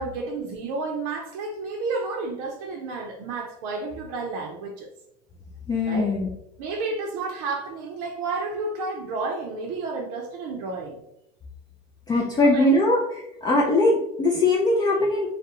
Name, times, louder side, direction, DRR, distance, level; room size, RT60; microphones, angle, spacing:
voice 1, 0.0-4.9 5.9-6.1 6.6-11.0 12.4-12.9 13.6-13.7, right 3 dB, 70° right, 0 dB, 0.5 m, -31 dB
voice 2, 5.7-6.3 12.1-13.0 13.4-15.3, left 2 dB, 20° left, -2 dB, 0.4 m, -20 dB
2.3 x 2.0 x 2.8 m, 0.80 s
supercardioid pair, 110°, 20 cm